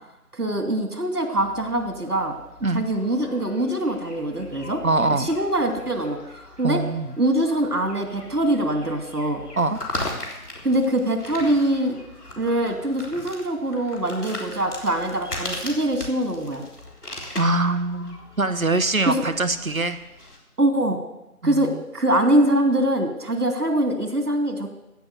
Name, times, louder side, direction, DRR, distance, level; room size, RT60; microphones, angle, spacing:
voice 1, 0.3-2.3 2.7-4.8 5.1-6.2 6.6-6.8 7.2-9.4 10.6-12.0 12.4-16.6 19.1-19.2 20.6-21.0 21.4-24.7, right 1 dB, 80° right, 5 dB, 2.8 m, -23 dB
sound 1, 1.4-20.4, left 1 dB, 85° left, 3.5 m, -39 dB
voice 2, 4.8-5.3 6.6-7.1 9.6-9.8 17.4-20.0 21.4-21.8, right 2 dB, 65° right, 11 dB, 1.0 m, -23 dB
15.0 x 6.2 x 8.1 m, 0.93 s
figure-of-eight pair, 180°, 45 cm